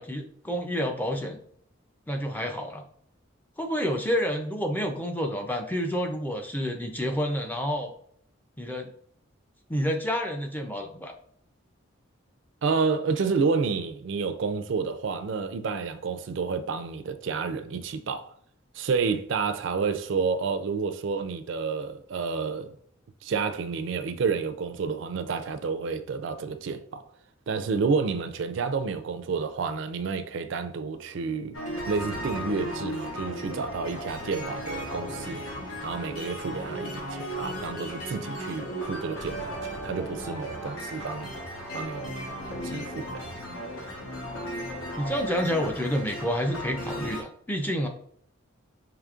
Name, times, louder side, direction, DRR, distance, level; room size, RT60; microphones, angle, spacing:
voice 1, 0.0-1.4 2.1-2.8 3.6-7.9 8.6-8.9 9.7-11.1 45.0-47.9, equal, 10° left, 0.4 m, -29 dB
voice 2, 12.6-18.3 18.7-22.7 23.2-27.0 27.5-31.6 31.9-35.4 35.8-41.3 41.7-42.2 42.4-43.2, right 5 dB, 60° right, 0.4 m, -30 dB
sound 1, 31.5-47.2, equal, 80° left, 1.1 m, -35 dB
5.0 x 2.9 x 2.4 m
head